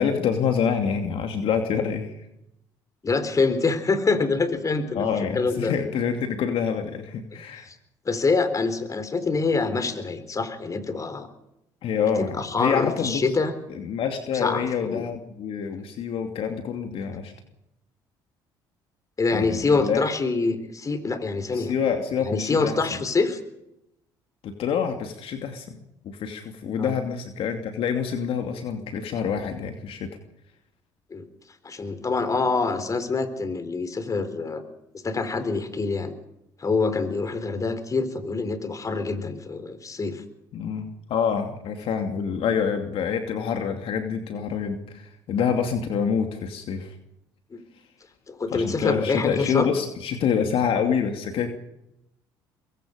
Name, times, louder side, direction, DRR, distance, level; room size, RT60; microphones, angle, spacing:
voice 1, 0.0-2.1 4.9-7.7 11.8-13.2 13.7-17.3 19.3-20.0 21.5-22.7 24.4-25.7 26.0-30.1 40.5-46.9 48.5-51.5, left 7 dB, 65° left, 5 dB, 2.7 m, -26 dB
voice 2, 3.0-5.1 5.3-5.7 7.3-7.8 8.1-11.3 12.2-13.5 14.3-15.1 19.2-21.7 22.3-23.4 26.8-26.9 31.1-31.3 31.6-34.6 35.0-36.1 36.6-40.2 47.5-47.6 48.3-49.7, left 4 dB, 35° left, 10 dB, 4.1 m, -25 dB
24.0 x 22.5 x 5.2 m, 0.84 s
supercardioid pair, 70°, 10 cm